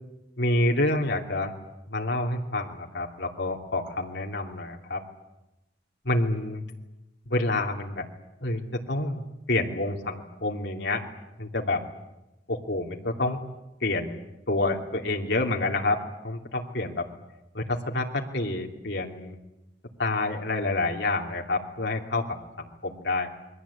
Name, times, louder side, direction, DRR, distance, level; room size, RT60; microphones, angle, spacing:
voice 1, 0.4-1.5 1.9-5.0 6.0-6.6 7.3-8.1 8.4-11.0 11.4-11.8 12.5-13.4 13.8-17.1 17.5-19.4 20.0-23.3, left 2 dB, 65° left, 1 dB, 3.0 m, -28 dB
28.5 x 22.0 x 8.6 m, 0.96 s
head